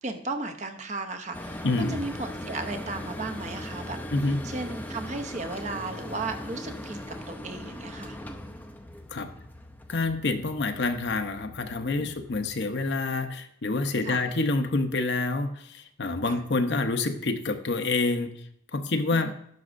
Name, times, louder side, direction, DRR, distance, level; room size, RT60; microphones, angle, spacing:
voice 1, 0.0-4.0 4.4-8.2 11.9-12.2 14.0-14.2 16.3-16.4 19.1-19.3, right 3 dB, 40° right, 7 dB, 0.7 m, -35 dB
sound 1, 1.3-12.6, left 1 dB, 10° left, 0.5 m, -40 dB
voice 2, 1.6-2.0 4.1-4.4 9.1-9.3 9.9-18.3 18.7-19.3, left 3 dB, 65° left, 7 dB, 0.7 m, -27 dB
10.5 x 6.2 x 2.5 m, 0.70 s
head